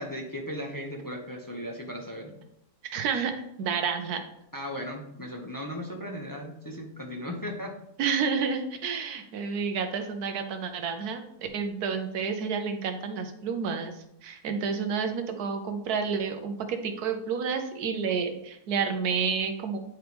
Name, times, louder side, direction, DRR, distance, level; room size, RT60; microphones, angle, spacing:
voice 1, 0.0-2.3 4.5-7.7, equal, 20° left, 1 dB, 0.6 m, -36 dB
voice 2, 2.8-4.2 8.0-19.8, right 6 dB, 80° right, 6 dB, 1.4 m, -30 dB
9.2 x 4.6 x 3.4 m, 0.79 s
omnidirectional pair, 1.6 m